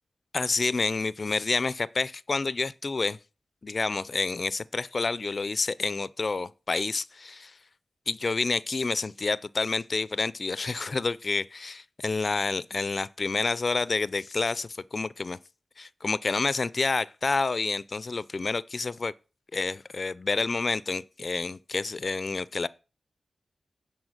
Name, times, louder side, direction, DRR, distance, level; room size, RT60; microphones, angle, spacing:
voice 1, 0.3-3.2 3.6-7.5 8.1-15.4 15.8-19.1 19.5-22.7, left 3 dB, 50° left, 0.4 m, -29 dB
9.6 x 4.4 x 6.5 m
cardioid pair, 65°, 0 cm